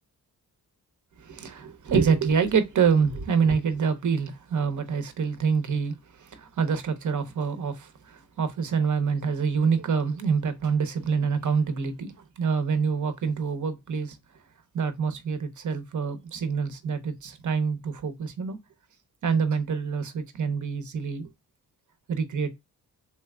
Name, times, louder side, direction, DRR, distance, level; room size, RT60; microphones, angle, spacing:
voice 1, 1.2-14.2 14.7-18.6 19.2-21.3 22.1-22.5, right 6 dB, 50° right, 0.8 m, -26 dB
3.3 x 2.8 x 2.3 m
cardioid pair, 50°, 40 cm